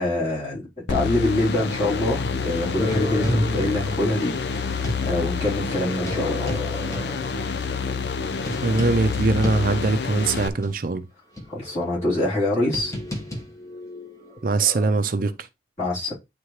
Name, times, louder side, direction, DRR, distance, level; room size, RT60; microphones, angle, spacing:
voice 1, 0.0-6.6 11.5-12.9 15.8-16.1, left 1 dB, 40° left, 3.6 m, -25 dB
sound 1, 0.9-10.5, left 5 dB, 65° left, 0.6 m, -28 dB
sound 2, 2.8-5.1 5.8-10.2 10.6-10.7 11.4-14.9, left 1 dB, 20° left, 1.1 m, -31 dB
voice 2, 8.6-11.1 14.4-15.3, right 3 dB, 50° right, 0.5 m, -22 dB
9.4 x 3.4 x 3.2 m
head